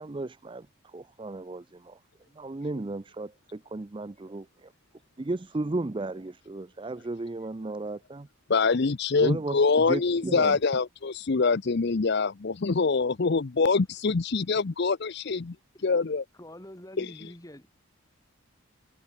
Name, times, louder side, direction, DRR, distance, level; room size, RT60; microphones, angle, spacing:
voice 1, 0.0-2.0 2.4-4.7 5.2-8.3 9.2-10.6, right 2 dB, 25° right, 0.4 m, -34 dB
voice 2, 8.5-15.6 15.8-16.2 17.0-17.1, left 4 dB, 50° left, 0.6 m, -25 dB
voice 3, 16.4-17.7, left 1 dB, 15° left, 2.4 m, -46 dB
head